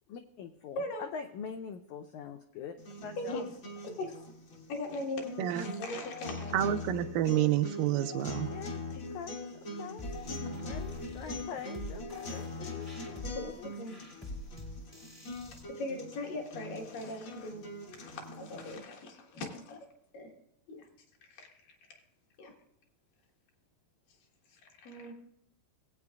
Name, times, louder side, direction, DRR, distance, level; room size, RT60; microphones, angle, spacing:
voice 1, 0.1-2.7 3.0-3.5 8.5-8.8 9.1-10.0 10.6-13.7, left 7 dB, 85° left, 1.7 m, -44 dB
voice 2, 0.8-1.1 3.2-3.4 4.0-6.6 8.9-9.0 10.3-10.6 13.3-14.0 15.8-17.6 18.0-19.8 20.1-20.3 20.7-20.9 21.3-21.8 22.4-22.5 24.5-25.1, left 2 dB, 70° left, 3.1 m, -40 dB
sound 1, 2.8-18.8, left 2 dB, 55° left, 1.4 m, -42 dB
voice 3, 5.4-5.8 6.5-8.5, right 12 dB, 80° right, 2.1 m, -29 dB
sound 2, 10.0-15.6, left 1 dB, 20° left, 0.8 m, -45 dB
18.5 x 8.5 x 2.3 m
omnidirectional pair, 4.1 m